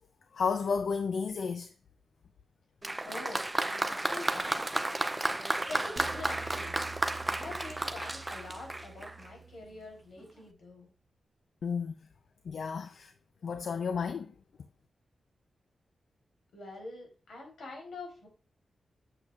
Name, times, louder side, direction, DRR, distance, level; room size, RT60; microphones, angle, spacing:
voice 1, 0.3-1.7 11.6-11.9 12.4-13.1 13.4-14.3, left 5 dB, 70° left, 0.5 m, -32 dB
Applause, 2.8-9.3 10.2-10.3, right 2 dB, 15° right, 0.5 m, -33 dB
voice 2, 3.0-3.4 3.7-4.7 5.7-6.8 7.3-10.9 16.5-18.3, left 2 dB, 90° left, 3.5 m, -44 dB
sound 1, 6.0-10.3, right 5 dB, 35° right, 0.9 m, -48 dB
8.3 x 7.0 x 2.5 m
wide cardioid pair, 125°, 0 cm